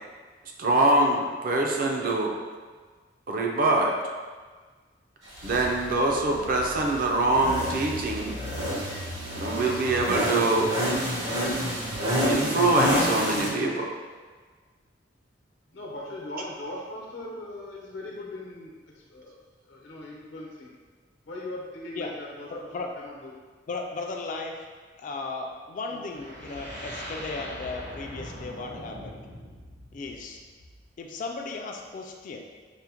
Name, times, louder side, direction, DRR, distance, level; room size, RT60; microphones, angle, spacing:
voice 1, 0.6-2.4 3.3-3.9 5.4-8.4 9.3-10.7 12.2-13.9, right 2 dB, 50° right, 1 dB, 0.4 m, -24 dB
sound 1, 5.3-13.5, equal, 85° right, 1.1 m, -29 dB
voice 2, 15.7-19.4 19.7-20.7 21.3-22.7 23.0-23.3 25.9-26.0, left 1 dB, 85° left, -3 dB, 0.8 m, -39 dB
voice 3, 22.5-22.9 23.7-24.6 25.0-29.1 29.9-30.4 31.0-32.4, left 3 dB, 45° left, 2 dB, 0.3 m, -36 dB
sound 2, 26.1-31.0, equal, 70° right, 1.5 m, -41 dB
4.9 x 2.0 x 2.8 m, 1.5 s
head